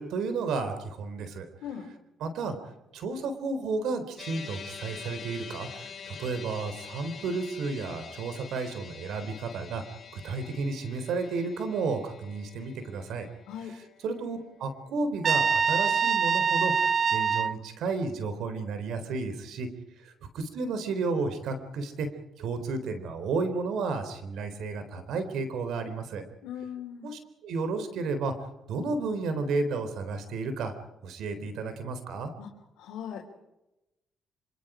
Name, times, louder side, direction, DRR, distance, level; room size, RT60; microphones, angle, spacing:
voice 1, 0.0-1.5 2.2-2.6 2.9-9.8 10.1-13.3 13.6-13.8 14.0-16.7 17.1-19.7 20.3-22.1 22.4-26.2 27.0-28.3 28.7-30.7 31.0-32.3, right 4 dB, 80° right, 9 dB, 3.8 m, -32 dB
voice 2, 1.6-1.9 13.5-13.7 26.4-27.1 32.4-32.5 32.8-33.3, left 8 dB, 90° left, -1 dB, 3.7 m, -39 dB
sound 1, 4.2-16.6, left 7 dB, 50° left, 4.2 m, -46 dB
Trumpet, 15.2-17.6, right 6 dB, 45° right, 0.9 m, -24 dB
26.5 x 26.0 x 5.0 m, 0.93 s
cardioid pair, 90°, 0 cm